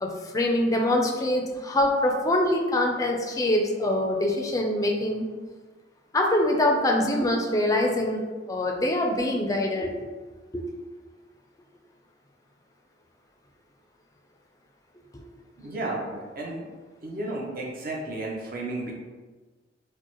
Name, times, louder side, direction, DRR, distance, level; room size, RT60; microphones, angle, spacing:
voice 1, 0.0-5.3 6.1-8.2 8.5-10.0 10.5-10.6, left 1 dB, 20° left, 1 dB, 0.4 m, -24 dB
voice 2, 15.6-16.7 17.0-18.9, right 2 dB, 50° right, -1 dB, 0.7 m, -33 dB
4.8 x 2.1 x 3.0 m, 1.3 s
head